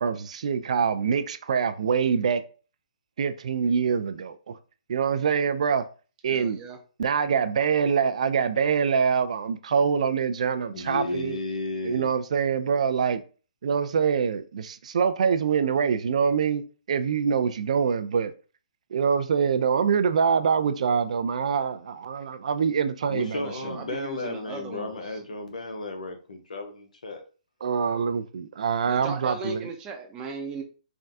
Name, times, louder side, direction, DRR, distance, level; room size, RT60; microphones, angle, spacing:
voice 1, 0.0-2.4 3.2-4.6 4.9-5.8 6.2-6.6 7.0-11.4 11.8-13.2 13.6-16.6 16.9-18.3 18.9-23.5 27.6-29.7, right 6 dB, 60° right, 0.4 m, -25 dB
voice 2, 6.3-6.8 23.4-25.2 28.8-30.6, right 4 dB, 20° right, 0.6 m, -37 dB
voice 3, 10.7-12.1 23.1-27.2, left 2 dB, 75° left, 0.8 m, -33 dB
3.4 x 2.2 x 2.6 m
hypercardioid pair, 135°, 4 cm